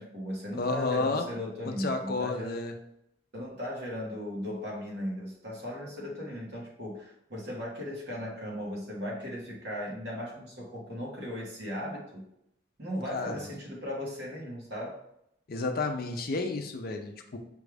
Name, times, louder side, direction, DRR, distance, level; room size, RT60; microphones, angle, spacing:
voice 1, 0.0-2.6 3.3-12.2 12.8-15.0, equal, 55° right, -3 dB, 1.3 m, -37 dB
voice 2, 0.5-1.3 1.7-2.7 13.1-13.5 15.5-17.4, left 3 dB, 50° left, 5 dB, 0.5 m, -31 dB
5.2 x 2.4 x 3.3 m, 0.78 s
head